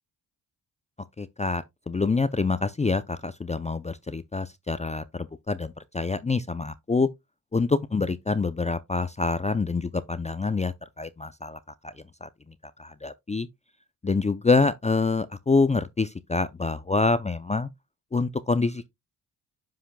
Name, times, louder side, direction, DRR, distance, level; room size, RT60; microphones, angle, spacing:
voice 1, 1.2-7.1 7.5-11.9 12.2-12.3 12.8-13.5 14.0-17.7 18.1-18.9, left 3 dB, 15° left, 0.5 m, -26 dB
10.0 x 5.7 x 2.2 m
supercardioid pair, 60°, 41 cm